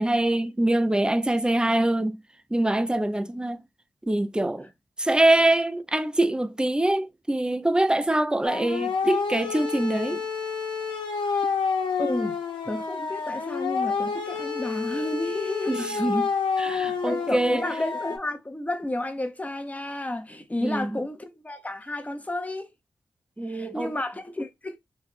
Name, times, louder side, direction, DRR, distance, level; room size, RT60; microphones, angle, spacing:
voice 1, 0.0-2.2 2.5-3.6 4.1-4.7 5.0-10.2 15.7-16.3 16.6-17.6 20.6-21.0 23.4-23.9, right 1 dB, 10° right, 0.5 m, -24 dB
sound 1, 8.4-18.2, left 5 dB, 85° left, 1.1 m, -29 dB
voice 2, 12.0-12.4 12.7-16.1 17.1-22.7 23.5-24.8, left 1 dB, 20° left, 0.9 m, -31 dB
4.2 x 2.4 x 3.3 m
cardioid pair, 65°, 8 cm